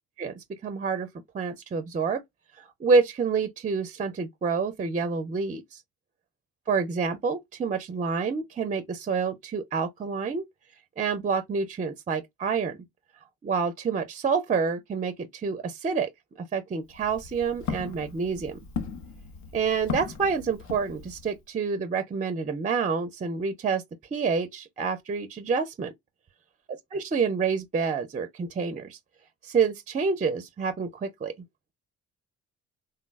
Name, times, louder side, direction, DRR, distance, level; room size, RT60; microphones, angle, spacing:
voice 1, 0.2-1.1 1.3-2.2 2.6-5.8 6.7-10.4 11.0-12.8 13.4-16.1 16.5-18.6 19.5-23.8 24.1-25.9 26.9-29.0 29.4-31.3, right 5 dB, 25° right, 0.4 m, -28 dB
Walk footsteps, 16.8-21.4, left 6 dB, 70° left, 0.7 m, -37 dB
3.4 x 2.2 x 2.2 m
cardioid pair, 90°, 30 cm